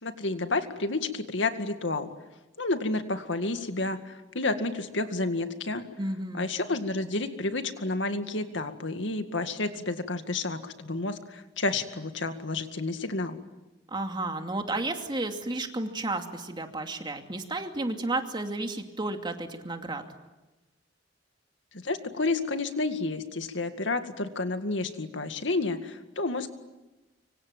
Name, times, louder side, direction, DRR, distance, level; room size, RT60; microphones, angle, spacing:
voice 1, 0.0-2.1 2.6-5.9 6.3-13.4 21.7-26.5, left 2 dB, 90° left, 8 dB, 2.1 m, -30 dB
voice 2, 6.0-6.4 13.9-20.0, right 2 dB, 25° right, 4 dB, 2.6 m, -32 dB
25.0 x 25.0 x 9.1 m, 1.1 s
head